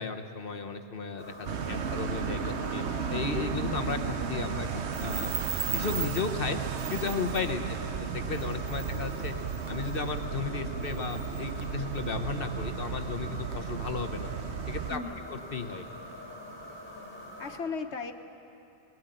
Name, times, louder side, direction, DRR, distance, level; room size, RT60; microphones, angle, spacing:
voice 1, 0.0-1.3 1.7-2.8 3.1-5.3 5.7-6.6 6.9-9.3 9.7-14.3 14.7-15.0 15.3-15.8, left 5 dB, 60° left, 6 dB, 1.1 m, -34 dB
sound 1, 1.2-17.6, left 1 dB, 10° left, 4.2 m, -44 dB
voice 2, 1.4-2.1 7.6-7.7 8.8-9.2 14.9-15.4 17.4-18.1, left 4 dB, 90° left, 6 dB, 1.5 m, -39 dB
sound 2, 1.5-15.0, right 7 dB, 90° right, 1.1 m, -34 dB
20.5 x 18.0 x 9.2 m, 2.8 s
omnidirectional pair, 1.1 m